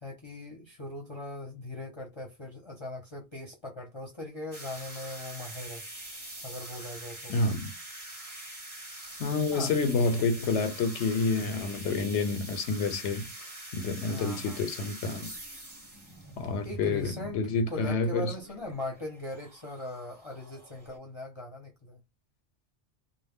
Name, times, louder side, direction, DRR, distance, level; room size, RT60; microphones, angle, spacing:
voice 1, 0.0-5.8 6.4-7.4 9.5-9.7 14.0-14.6 16.6-22.0, left 1 dB, 30° left, 0.6 m, -40 dB
sound 1, 4.5-21.0, right 1 dB, 25° right, 0.7 m, -44 dB
voice 2, 7.3-7.7 9.2-15.3 16.4-18.3, left 3 dB, 90° left, 0.9 m, -29 dB
2.1 x 2.0 x 3.4 m
omnidirectional pair, 1.2 m